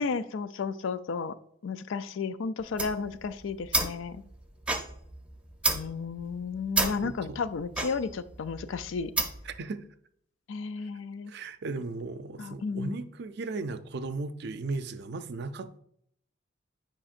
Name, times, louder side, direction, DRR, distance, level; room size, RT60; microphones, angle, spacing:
voice 1, 0.0-1.4 1.6-4.2 5.7-9.1 10.5-11.3 12.4-13.0, left 5 dB, 80° left, 0.4 m, -33 dB
sound 1, 2.6-9.6, right 2 dB, 5° right, 0.6 m, -32 dB
voice 2, 7.0-7.4 9.4-9.8 11.3-15.8, right 3 dB, 60° right, 0.5 m, -36 dB
8.7 x 5.2 x 2.5 m
head